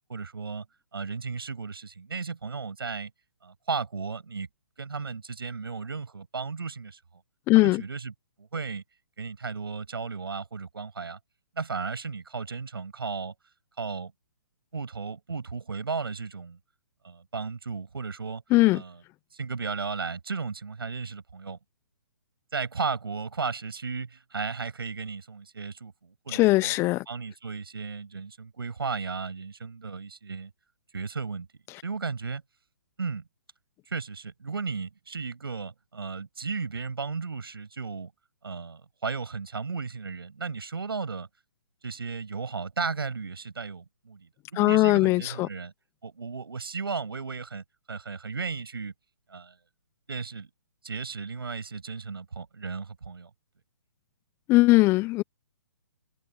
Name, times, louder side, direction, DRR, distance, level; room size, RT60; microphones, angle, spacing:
voice 1, 0.1-0.6 0.9-3.1 3.4-4.5 4.8-7.0 7.5-8.8 9.2-11.2 11.5-13.3 13.8-14.1 14.7-16.6 17.0-18.4 18.7-19.0 19.3-21.6 22.5-26.7 27.1-30.5 30.9-31.5 31.8-32.4 33.0-33.2 33.9-38.1 38.4-41.3 41.8-45.7 46.0-48.9 49.3-49.5 50.1-50.5 50.8-53.3, right 5 dB, 75° right, 6.7 m, -35 dB
voice 2, 7.5-7.8 18.5-18.8 26.3-27.0 44.6-45.5 54.5-55.2, left 20 dB, 20° left, 0.7 m, -20 dB
figure-of-eight pair, 135°, 12 cm